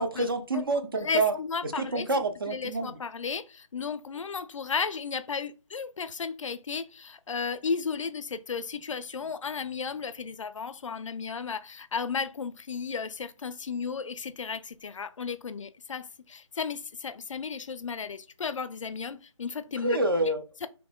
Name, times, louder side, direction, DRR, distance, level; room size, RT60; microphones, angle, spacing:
voice 1, 0.0-1.4 1.6-3.0 19.8-20.4, right 2 dB, 45° right, 0.5 m, -27 dB
voice 2, 1.0-2.1 2.5-20.0 20.6-20.7, left 5 dB, 70° left, 0.4 m, -34 dB
3.6 x 3.0 x 2.2 m
figure-of-eight pair, 170°, 17 cm